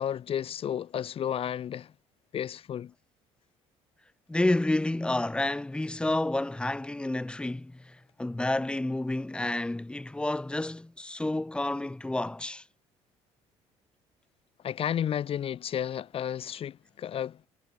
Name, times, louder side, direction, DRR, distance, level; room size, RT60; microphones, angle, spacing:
voice 1, 0.0-1.9 2.3-2.9 14.6-17.4, left 9 dB, 50° left, 1.5 m, -32 dB
voice 2, 4.3-12.6, left 2 dB, 10° left, 0.8 m, -30 dB
cardioid pair, 100°, 12 cm